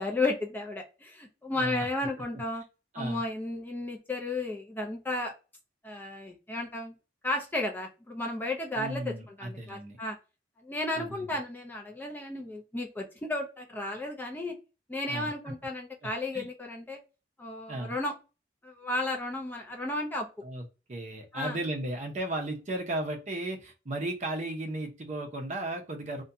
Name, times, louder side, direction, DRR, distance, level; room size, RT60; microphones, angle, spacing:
voice 1, 0.0-2.6 3.0-5.3 5.8-6.9 7.2-10.2 10.6-14.6 14.9-17.0 17.4-18.1 18.6-20.3 21.3-21.6, left 2 dB, 10° left, 1 dB, 0.4 m, -33 dB
voice 2, 1.5-1.9 2.9-3.2 8.8-10.0 11.0-11.2 15.1-15.6 16.3-16.5 17.7-17.9 20.4-26.2, right 1 dB, 40° right, 4 dB, 0.6 m, -35 dB
2.5 x 2.2 x 2.6 m, 0.31 s
head